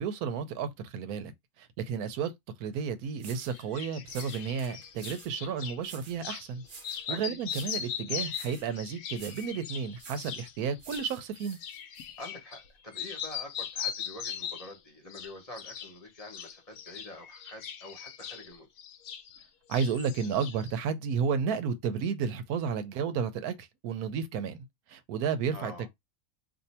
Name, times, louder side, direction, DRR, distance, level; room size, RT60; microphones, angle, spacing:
voice 1, 0.0-1.3 1.6-2.3 2.6-6.6 7.1-11.6 19.7-25.9, right 6 dB, 85° right, 1.1 m, -32 dB
sound 1, 2.7-2.8 3.2-3.6 4.1-5.4 5.8-6.2 6.6-7.1 7.4-7.9 8.3-8.7 9.1-9.6 10.0-10.4 10.8-12.1, right 4 dB, 50° right, 0.7 m, -49 dB
sound 2, 3.5-5.8 6.2-6.5 6.8-12.7 12.9-14.8 15.1-15.9 16.2-19.5 19.7-20.7, left 8 dB, 75° left, 1.0 m, -39 dB
voice 2, 7.1-7.4 12.2-18.7 25.5-25.9, left 1 dB, 30° left, 0.9 m, -46 dB
2.7 x 2.5 x 4.2 m
omnidirectional pair, 1.5 m